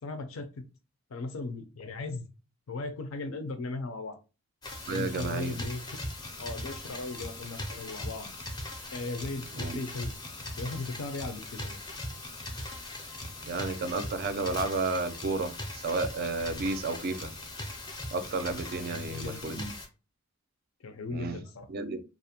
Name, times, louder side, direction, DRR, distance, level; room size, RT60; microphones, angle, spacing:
voice 1, 0.0-0.6 1.1-2.3 2.7-4.2 4.9-5.8 6.4-8.3 8.9-10.1 10.6-11.8 18.7-19.6 20.8-21.7, left 3 dB, 80° left, 9 dB, 0.5 m, -37 dB
sound 1, 4.6-19.9, left 1 dB, 20° left, 0.4 m, -40 dB
voice 2, 4.9-5.5 9.5-9.8 13.5-17.3 18.1-19.7 21.1-21.4 21.7-22.0, right 3 dB, 45° right, 9 dB, 0.3 m, -32 dB
2.4 x 2.0 x 2.7 m, 0.31 s
head